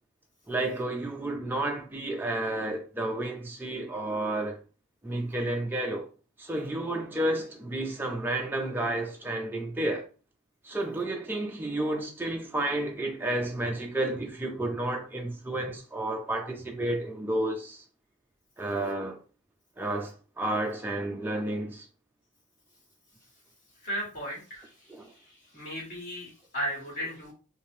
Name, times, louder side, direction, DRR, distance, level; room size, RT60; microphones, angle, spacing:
voice 1, 0.5-4.6 5.0-6.1 6.4-10.1 10.6-17.8 18.6-19.2 19.8-21.9 24.9-25.1, right 1 dB, 10° right, 0.3 m, -31 dB
voice 2, 23.8-24.7 25.5-27.3, equal, 35° left, 1.7 m, -35 dB
3.2 x 2.5 x 2.7 m
head